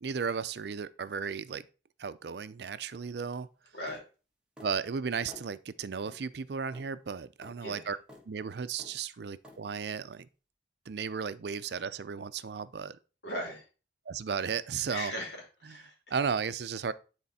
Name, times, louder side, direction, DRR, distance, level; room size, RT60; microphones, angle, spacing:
voice 1, 0.0-1.6 2.0-3.5 4.6-8.0 8.3-10.3 10.9-13.0 14.1-15.1 15.7-15.8 16.1-16.9, right 6 dB, 65° right, 0.5 m, -34 dB
sound 1, 3.9-4.0 4.6-4.8 5.3-5.5 6.0-6.2 6.7-6.9 7.4-7.6 8.1-8.3 8.8-9.0 9.4-9.6, left 1 dB, 5° right, 1.4 m, -50 dB
voice 2, 13.2-13.7 14.9-16.2, equal, 70° left, 3.0 m, -39 dB
9.6 x 4.3 x 4.1 m
head